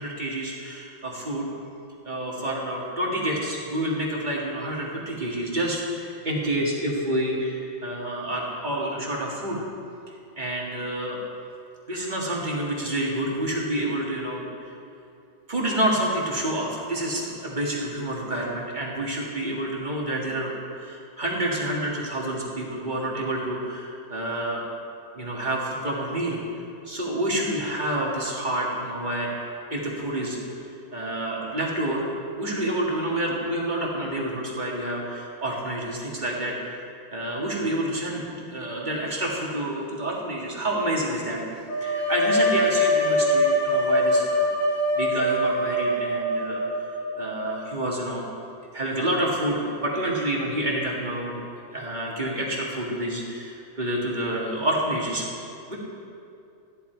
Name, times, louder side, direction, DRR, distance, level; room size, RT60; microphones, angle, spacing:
voice 1, 0.0-1.5 2.0-9.6 10.4-11.2 11.9-14.7 15.5-24.6 25.2-26.4 26.9-30.4 30.9-32.1 32.4-36.6 37.1-41.4 41.8-46.6 47.2-48.2 48.7-51.4 51.7-55.3 55.7-55.8, right 1 dB, 25° right, -4 dB, 1.9 m, -28 dB
sound 1, 41.7-47.5, equal, 85° left, 4.5 m, -23 dB
13.5 x 11.0 x 4.6 m, 2.5 s
omnidirectional pair, 2.2 m